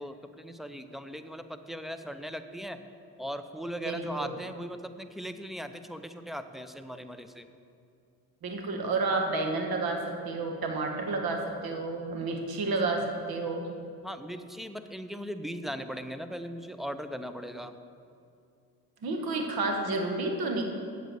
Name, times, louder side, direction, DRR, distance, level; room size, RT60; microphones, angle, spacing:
voice 1, 0.0-2.8 3.2-7.5 14.0-17.7, equal, ahead, 9 dB, 0.6 m, -38 dB
voice 2, 3.8-4.3 8.4-13.7 19.0-20.6, right 3 dB, 65° right, 3 dB, 1.6 m, -30 dB
8.1 x 6.7 x 7.7 m, 2.4 s
cardioid pair, 75°, 39 cm